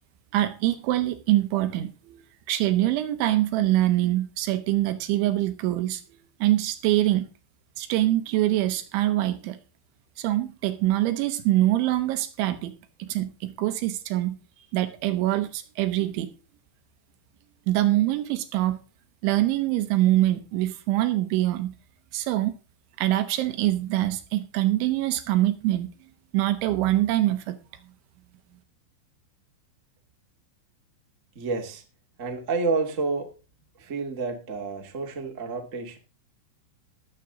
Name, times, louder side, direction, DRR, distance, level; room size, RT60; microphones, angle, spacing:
voice 1, 0.3-6.0 6.4-7.3 7.8-9.6 10.2-12.7 13.0-14.4 14.7-16.3 17.7-18.8 19.2-21.7 22.1-22.5 23.0-25.9 26.3-27.6, right 15 dB, 75° right, 3.2 m, -24 dB
voice 2, 31.3-31.8 32.2-33.3 33.8-36.0, right 4 dB, 50° right, 0.8 m, -29 dB
19.5 x 7.3 x 3.8 m
omnidirectional pair, 5.8 m